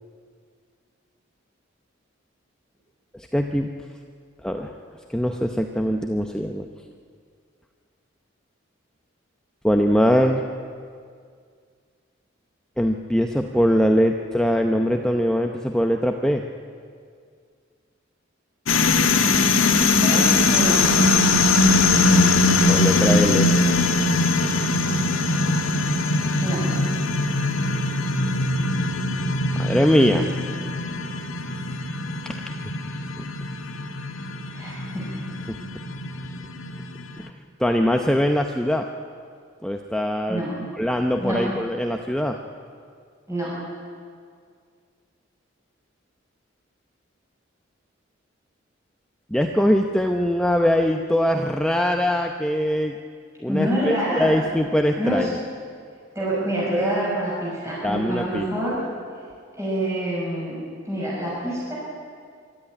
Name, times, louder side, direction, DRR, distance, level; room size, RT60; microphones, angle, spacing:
voice 1, 3.1-3.7 4.4-4.7 5.1-6.7 9.6-10.4 12.8-16.4 22.7-23.5 29.6-30.3 33.2-33.3 35.5-35.6 37.2-37.3 37.6-38.9 39.6-40.5 40.7-42.4 49.3-52.9 53.4-55.4 57.8-58.5, equal, 5° left, 3 dB, 0.7 m, -22 dB
sound 1, 18.7-37.1, left 3 dB, 90° left, 1.6 m, -21 dB
voice 2, 20.0-20.8 26.4-26.6 34.5-35.1 40.3-40.5 41.2-41.4 43.3-43.5 53.5-54.3 55.0-55.3 56.1-58.8 59.6-60.6 60.8-61.7, equal, 15° right, -8 dB, 6.5 m, -26 dB
24.5 x 13.5 x 9.9 m, 2.1 s
head